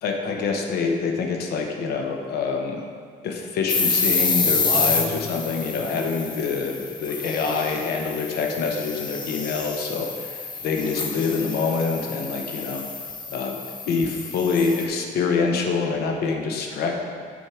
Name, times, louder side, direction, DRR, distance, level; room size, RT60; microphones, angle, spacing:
voice 1, 0.0-2.8 3.2-12.8 13.3-13.6 13.8-17.1, left 4 dB, 70° left, 2 dB, 0.8 m, -26 dB
sound 1, 3.7-14.9, left 4 dB, 25° left, 0.7 m, -28 dB
5.6 x 4.5 x 4.8 m, 2.1 s
cardioid pair, 110°, 17 cm